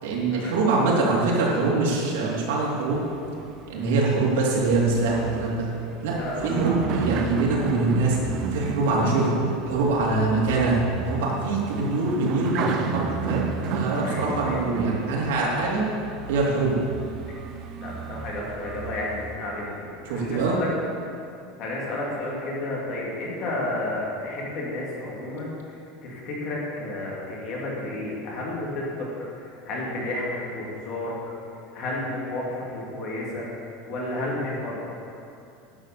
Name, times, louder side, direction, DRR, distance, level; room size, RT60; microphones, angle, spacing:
voice 1, 0.0-3.0 3.7-5.7 6.0-6.2 6.4-8.2 8.5-9.4 9.7-10.8 11.0-13.4 13.7-15.8 16.3-16.8 20.0-20.6, right 3 dB, 85° right, -4 dB, 3.0 m, -24 dB
sound 1, 2.9-19.6 20.2-20.7, right 5 dB, 35° right, 0.8 m, -32 dB
voice 2, 6.2-6.9 14.0-14.6 17.8-20.7 21.6-25.5 26.0-29.1 29.7-31.2 31.7-33.5 33.8-34.9, left 2 dB, 40° left, -4 dB, 2.8 m, -31 dB
11.0 x 6.7 x 6.9 m, 2.6 s
supercardioid pair, 170°, 0 cm